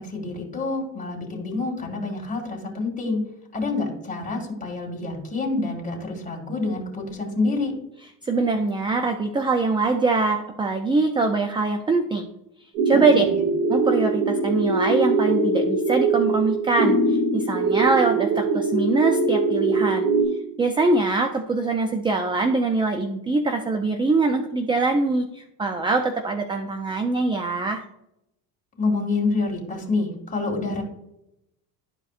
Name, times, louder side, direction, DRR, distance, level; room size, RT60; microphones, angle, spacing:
voice 1, 0.0-3.2 3.5-7.7 12.9-13.4 28.8-30.8, left 3 dB, 15° left, -1 dB, 2.3 m, -27 dB
voice 2, 8.2-12.3 12.9-13.3 13.7-20.1 20.6-27.8, right 3 dB, 10° right, 6 dB, 0.3 m, -23 dB
sound 1, 12.8-20.2, right 3 dB, 85° right, 2.4 m, -22 dB
12.0 x 4.8 x 2.5 m, 0.82 s
supercardioid pair, 110°, 45 cm